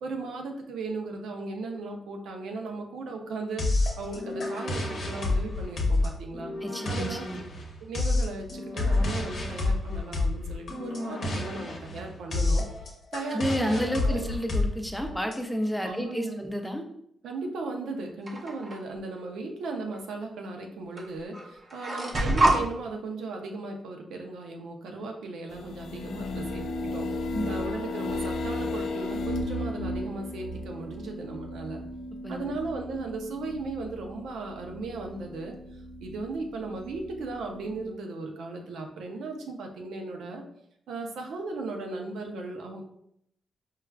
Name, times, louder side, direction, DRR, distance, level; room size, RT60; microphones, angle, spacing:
voice 1, 0.0-6.5 6.9-7.3 7.8-12.6 13.1-14.3 15.8-16.4 17.2-31.8 32.3-40.4 40.9-42.8, right 3 dB, 90° right, 3 dB, 0.5 m, -36 dB
sound 1, 3.6-15.4, left 2 dB, 55° left, 0.8 m, -29 dB
voice 2, 6.6-7.4 13.3-16.8 27.3-27.6 32.2-32.6, equal, ahead, 4 dB, 0.4 m, -31 dB
sound 2, 18.3-18.8 19.9-20.0 21.0-21.1 21.3-22.6, right 1 dB, 35° right, 0.6 m, -25 dB
sound 3, 25.5-37.9, left 1 dB, 85° left, 0.3 m, -35 dB
4.6 x 2.3 x 2.3 m, 0.72 s
cardioid pair, 110°, 0 cm